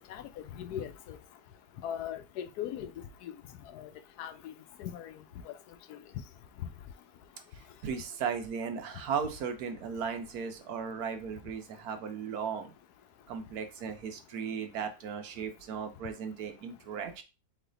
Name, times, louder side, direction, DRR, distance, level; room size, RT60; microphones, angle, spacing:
voice 1, 0.1-1.2 1.8-2.9 3.2-3.3 3.7-3.9 4.2-4.5 4.8-5.1 5.5-5.6 5.9-6.0, left 10 dB, 85° left, 1.1 m, -39 dB
voice 2, 7.8-12.7 13.3-17.2, right 6 dB, 75° right, 1.3 m, -36 dB
4.1 x 3.2 x 3.8 m
omnidirectional pair, 1.6 m